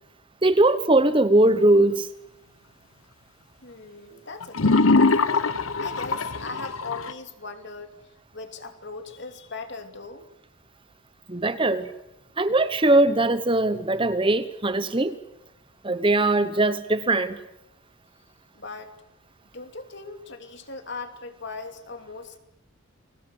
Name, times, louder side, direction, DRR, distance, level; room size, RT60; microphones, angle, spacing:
voice 1, 0.4-2.1 11.3-11.9 12.4-15.1 15.8-17.4, right 2 dB, 25° right, 12 dB, 1.1 m, -20 dB
voice 2, 3.6-5.2 5.8-10.3 18.5-18.9 19.5-22.4, left 3 dB, 50° left, 7 dB, 2.9 m, -39 dB
sound 1, 4.4-7.1, left 3 dB, 75° left, 1.1 m, -22 dB
30.0 x 21.5 x 8.0 m, 0.84 s
head